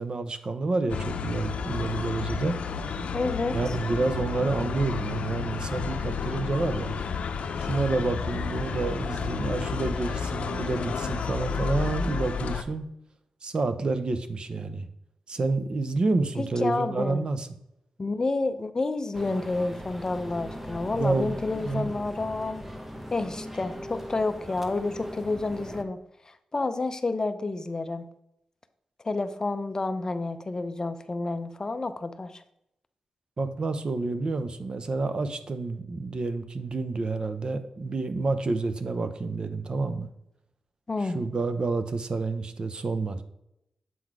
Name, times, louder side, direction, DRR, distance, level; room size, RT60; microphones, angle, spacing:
voice 1, 0.0-2.6 3.5-6.9 7.6-12.9 13.4-14.9 15.3-17.5 20.9-21.9 33.4-40.1 41.0-43.2, right 3 dB, 45° right, 10 dB, 0.6 m, -29 dB
sound 1, 0.9-12.6, left 5 dB, 75° left, 0.6 m, -31 dB
voice 2, 3.1-3.8 16.4-17.2 18.0-22.7 23.1-28.1 29.0-32.4 40.9-41.2, left 3 dB, 30° left, 10 dB, 0.5 m, -30 dB
sound 2, 19.1-25.8, equal, 10° right, 0.8 m, -40 dB
7.6 x 4.0 x 4.7 m, 0.81 s
wide cardioid pair, 95°, 2 cm